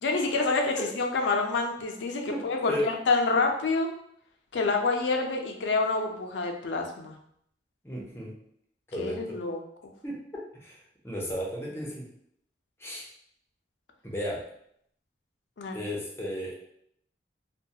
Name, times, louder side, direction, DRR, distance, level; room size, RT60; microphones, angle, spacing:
voice 1, 0.0-3.9 4.5-7.1 9.0-9.6 15.6-15.8, left 3 dB, 75° left, 3 dB, 0.4 m, -27 dB
voice 2, 7.8-8.3 8.9-9.4 10.0-10.2 10.6-12.1 12.8-13.0 14.0-14.4 15.7-16.6, left 1 dB, 15° left, -4 dB, 0.6 m, -34 dB
2.2 x 2.2 x 2.7 m, 0.70 s
head